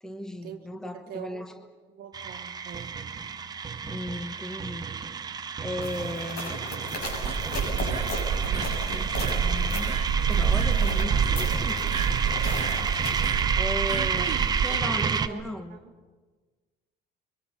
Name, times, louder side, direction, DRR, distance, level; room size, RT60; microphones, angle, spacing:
voice 1, 0.0-1.5 3.8-4.9 5.6-6.5 8.5-10.0 10.3-11.8 13.5-14.4 14.6-15.8, left 1 dB, 5° left, 7 dB, 1.1 m, -36 dB
voice 2, 0.9-3.0 11.8-12.0 13.9-15.9, right 8 dB, 60° right, 4 dB, 1.4 m, -43 dB
sound 1, 2.1-15.3, right 6 dB, 25° right, 0.8 m, -30 dB
sound 2, 5.8-13.4, left 2 dB, 70° left, 7.8 m, -37 dB
sound 3, 7.0-14.8, right 6 dB, 40° right, 1.4 m, -27 dB
29.5 x 23.5 x 5.7 m, 1.4 s
cardioid pair, 160°, 17 cm